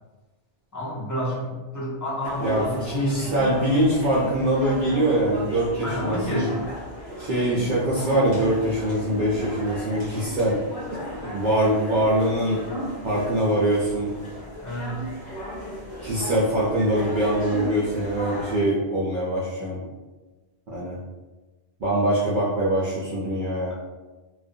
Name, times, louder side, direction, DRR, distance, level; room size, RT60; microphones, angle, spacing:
voice 1, 0.7-3.3 5.8-6.7 7.4-7.7 14.6-15.0, equal, 25° left, -7 dB, 0.4 m, -30 dB
sound 1, 2.2-18.6, equal, 55° left, 0.9 m, -36 dB
voice 2, 2.4-6.5 7.2-10.6 11.2-12.6 13.0-14.1 16.0-19.8 20.7-21.0 21.8-23.7, right 1 dB, 60° right, -7 dB, 0.5 m, -23 dB
2.4 x 2.1 x 2.6 m, 1.2 s
omnidirectional pair, 1.2 m